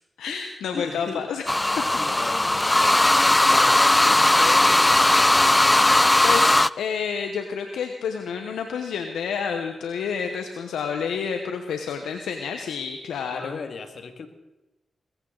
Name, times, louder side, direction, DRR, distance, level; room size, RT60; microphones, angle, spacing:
voice 1, 0.2-1.8 5.8-13.6, left 6 dB, 85° left, 5 dB, 1.1 m, -30 dB
voice 2, 0.7-1.3 1.9-2.7 3.1-5.2 13.3-14.3, left 4 dB, 65° left, 7 dB, 2.1 m, -36 dB
sound 1, 1.5-6.7, left 1 dB, 20° left, 0.4 m, -18 dB
21.0 x 15.0 x 4.0 m, 0.96 s
supercardioid pair, 50°, 0 cm